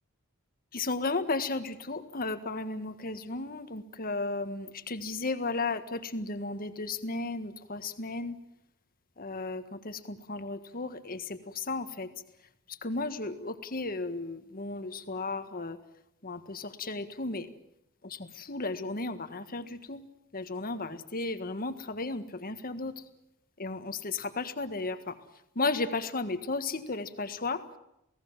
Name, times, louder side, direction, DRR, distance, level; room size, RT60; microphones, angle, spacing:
voice 1, 0.7-8.4 9.2-12.1 12.7-15.8 16.2-17.5 18.0-20.0 20.3-23.0 23.6-25.2 25.5-27.6, left 3 dB, 40° left, 9 dB, 1.7 m, -34 dB
28.0 x 18.0 x 7.5 m, 0.82 s
head